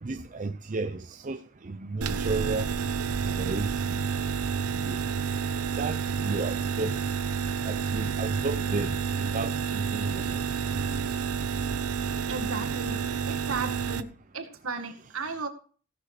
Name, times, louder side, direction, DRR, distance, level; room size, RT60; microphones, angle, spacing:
voice 1, 0.0-2.7 3.3-4.0 4.7-5.0 5.8-7.0 7.6-9.0 9.3-10.4, right 3 dB, 35° right, 0.5 m, -33 dB
sound 1, 2.0-14.0, right 6 dB, 90° right, 0.9 m, -29 dB
voice 2, 12.3-13.0 13.3-14.1 14.3-15.5, right 4 dB, 70° right, 2.0 m, -35 dB
16.5 x 6.7 x 5.0 m
head